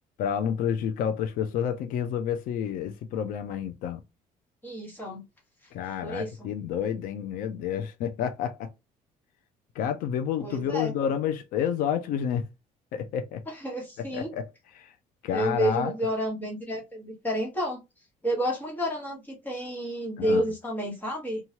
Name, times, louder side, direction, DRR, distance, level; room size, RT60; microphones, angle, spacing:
voice 1, 0.2-4.0 5.7-8.7 9.8-12.5 12.9-13.4 14.0-14.5 14.7-14.9 15.2-15.9 20.2-20.4, left 8 dB, 80° left, 0.5 m, -29 dB
voice 2, 4.6-5.2 6.0-6.5 10.4-10.9 13.5-14.3 15.3-17.8 18.2-21.4, equal, 10° left, 1.2 m, -30 dB
3.0 x 2.3 x 2.8 m
cardioid pair, 160°, 14 cm